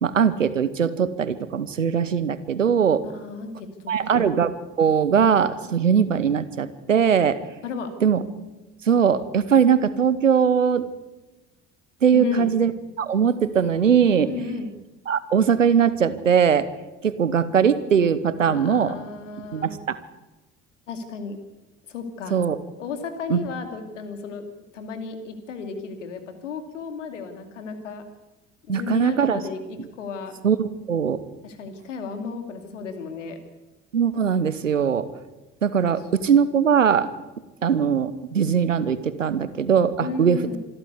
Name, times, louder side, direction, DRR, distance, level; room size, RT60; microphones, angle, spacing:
voice 1, 0.0-3.0 3.9-4.5 4.8-7.4 8.0-8.2 8.9-10.8 12.0-12.7 13.0-14.3 15.1-16.7 17.0-19.0 19.5-20.0 22.3-22.6 23.3-23.4 28.7-29.4 30.4-31.2 33.9-35.1 35.6-37.1 37.6-40.4, right 7 dB, 90° right, 15 dB, 1.0 m, -20 dB
voice 2, 3.0-4.3 7.6-7.9 12.1-12.5 14.3-14.7 18.4-19.7 20.9-21.4 21.9-22.4 22.8-24.4 24.7-28.0 28.7-30.4 31.4-33.4 40.0-40.6, left 5 dB, 80° left, 8 dB, 2.4 m, -33 dB
26.5 x 12.0 x 8.1 m, 1.1 s
figure-of-eight pair, 55°, 37 cm